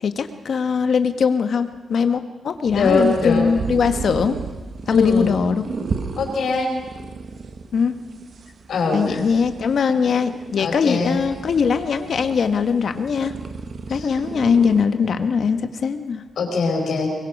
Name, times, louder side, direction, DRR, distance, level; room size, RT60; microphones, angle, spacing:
voice 1, 0.0-4.3 4.9-5.6 7.7-7.9 8.9-13.3 13.9-16.2, left 6 dB, 60° left, 8 dB, 1.3 m, -21 dB
voice 2, 2.7-3.5 4.9-5.3 6.2-6.8 8.7-9.2 10.6-11.2 13.9-14.1 16.4-17.1, left 4 dB, 80° left, 2 dB, 5.0 m, -21 dB
sound 1, 2.7-14.9, right 5 dB, 55° right, 1.3 m, -34 dB
24.0 x 22.0 x 5.3 m, 1.3 s
wide cardioid pair, 115°, 0 cm